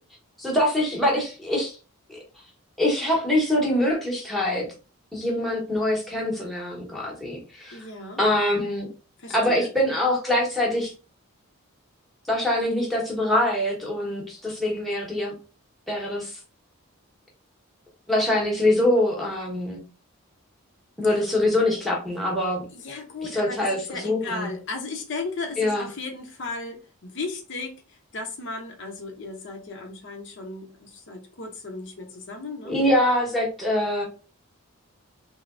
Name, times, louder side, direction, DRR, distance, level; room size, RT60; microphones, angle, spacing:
voice 1, 0.4-1.8 2.1-2.2 2.8-4.6 5.1-7.9 8.2-8.9 9.3-10.9 12.3-15.3 15.9-16.4 18.1-19.8 21.0-22.6 23.3-24.5 25.6-25.9 32.6-34.0, left 1 dB, ahead, 0.9 m, -24 dB
voice 2, 7.7-8.2 9.2-9.7 22.7-32.8, left 3 dB, 50° left, 0.6 m, -35 dB
3.3 x 2.8 x 2.4 m
head